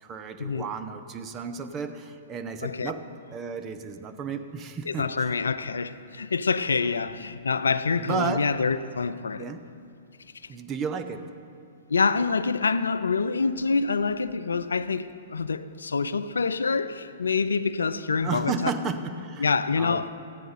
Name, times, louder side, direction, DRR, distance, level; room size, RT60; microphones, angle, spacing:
voice 1, 0.0-5.3 7.1-7.2 8.0-8.5 9.4-9.6 10.5-11.3 18.2-19.5 19.8-20.1, right 5 dB, 25° right, 0.7 m, -33 dB
voice 2, 2.6-2.9 4.9-9.6 11.9-18.5 19.4-20.1, left 4 dB, 85° left, 0.4 m, -26 dB
14.0 x 9.2 x 4.0 m
hypercardioid pair, 120°, 0 cm